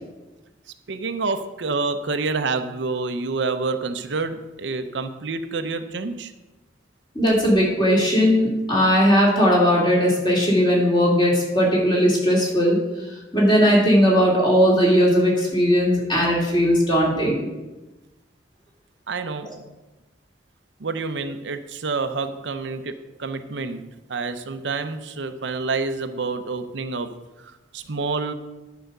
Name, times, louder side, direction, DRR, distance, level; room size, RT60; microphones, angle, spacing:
voice 1, 0.9-6.3 19.1-19.5 20.8-23.8 24.1-27.1 27.4-28.3, right 4 dB, 75° right, 8 dB, 0.6 m, -28 dB
voice 2, 7.1-12.8 13.3-17.4, equal, 25° left, -3 dB, 2.8 m, -18 dB
10.5 x 4.9 x 6.6 m, 1.1 s
head